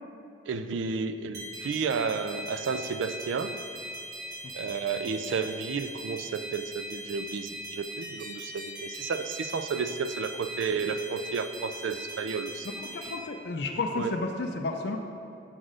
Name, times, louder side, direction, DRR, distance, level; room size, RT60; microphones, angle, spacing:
voice 1, 0.5-3.6 4.5-12.7 13.0-13.1 13.9-14.2, right 5 dB, 75° right, 10 dB, 0.3 m, -32 dB
sound 1, 1.3-13.2, equal, 55° right, 1.4 m, -40 dB
voice 2, 12.9-15.0, left 3 dB, 55° left, 3 dB, 0.4 m, -31 dB
6.1 x 4.0 x 6.3 m, 2.7 s
head